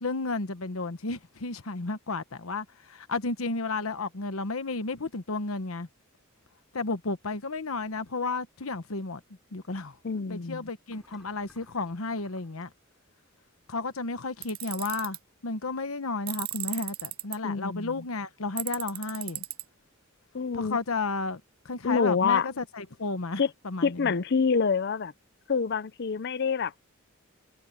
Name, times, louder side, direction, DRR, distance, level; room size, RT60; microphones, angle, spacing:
voice 1, 0.0-5.9 6.7-9.2 9.5-10.0 10.3-12.7 13.7-15.2 15.4-19.4 20.5-24.2, left 3 dB, 85° left, 1.1 m, -32 dB
sound 1, 7.7-8.2 10.8-12.6, equal, ahead, 5.6 m, -61 dB
voice 2, 10.0-10.6 17.4-17.9 20.3-20.8 21.8-22.5 23.4-23.5 23.8-25.1 25.5-26.8, left 5 dB, 55° left, 0.5 m, -26 dB
Tools, 14.4-15.2 16.3-17.4 18.6-19.6, right 16 dB, 45° right, 0.4 m, -35 dB
head